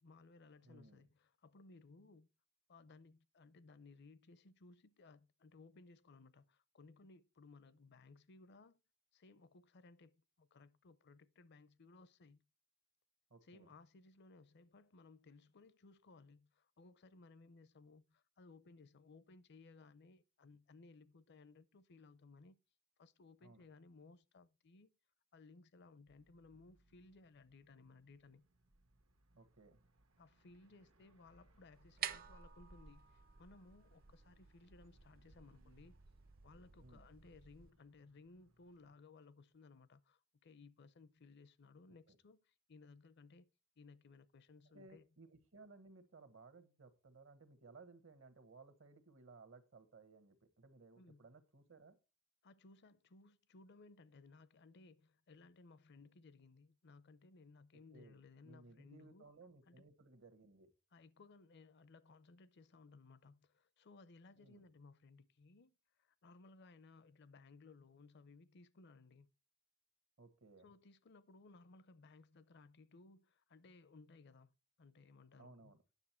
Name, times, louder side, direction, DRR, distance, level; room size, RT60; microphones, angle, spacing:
voice 1, 0.0-2.3 2.7-8.8 9.1-12.4 13.4-22.6 23.0-24.9 25.3-28.5 30.2-36.0 36.4-43.5 43.8-45.1 51.0-51.2 52.4-59.3 59.7-59.8 60.9-69.3 70.6-75.7, left 3 dB, 55° left, 0.5 m, -62 dB
voice 2, 0.6-1.0 13.3-13.7 23.4-23.6 29.3-29.8 36.8-37.1 42.1-42.2 44.7-52.0 57.9-58.2 58.4-60.7 64.3-64.6 70.2-70.7 75.4-75.8, right 3 dB, 70° right, 1.2 m, -61 dB
sound 1, 26.1-38.9, right 1 dB, 85° right, 1.2 m, -73 dB
sound 2, 31.7-37.7, right 9 dB, 45° right, 0.6 m, -51 dB
9.8 x 6.5 x 4.3 m
head